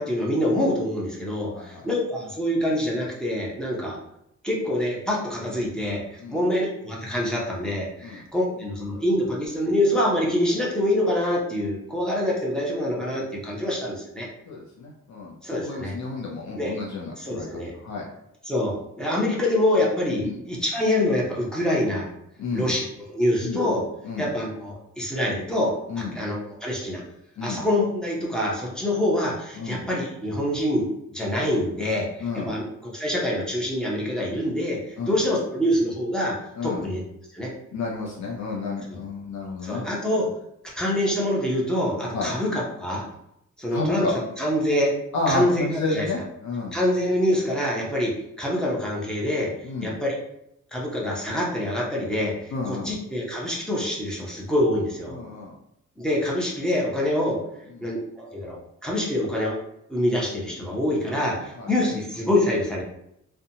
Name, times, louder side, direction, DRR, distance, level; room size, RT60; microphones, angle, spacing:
voice 1, 0.0-4.0 4.4-14.3 15.4-15.9 16.6-16.8 17.2-17.7 18.5-22.1 22.5-23.9 24.2-27.0 27.4-37.0 37.3-37.5 39.6-40.3 40.7-43.1 43.6-45.0 45.3-46.1 46.7-49.5 49.8-50.2 50.7-55.1 56.0-57.4 57.8-59.6 59.9-62.8, left 1 dB, 5° left, -4 dB, 0.6 m, -25 dB
voice 2, 1.5-1.9 6.2-6.4 8.0-8.2 14.5-18.1 20.2-20.3 22.4-22.7 23.4-23.6 24.0-24.3 25.9-26.2 27.4-27.6 29.6-29.9 32.2-32.5 35.0-35.2 36.6-36.8 37.7-39.8 42.1-42.3 43.7-44.1 45.1-46.8 49.6-49.9 52.5-52.9 55.1-55.5 57.7-57.9 61.1-61.2 61.6-61.7, left 3 dB, 65° left, -2 dB, 0.5 m, -31 dB
2.7 x 2.2 x 2.7 m, 0.79 s
wide cardioid pair, 145°, 30 cm